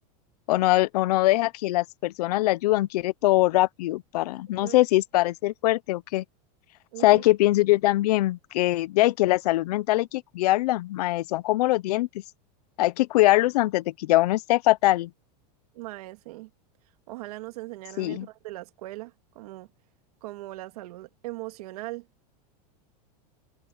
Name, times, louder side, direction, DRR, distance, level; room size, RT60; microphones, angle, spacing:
voice 1, 0.5-6.2 7.0-12.1 12.8-15.1 18.0-18.3, left 18 dB, 65° left, 0.7 m, -22 dB
voice 2, 4.5-4.8 6.9-7.2 15.7-16.5 17.1-19.7 20.2-22.1, right 19 dB, 65° right, 2.2 m, -39 dB
supercardioid pair, 165°, 21 cm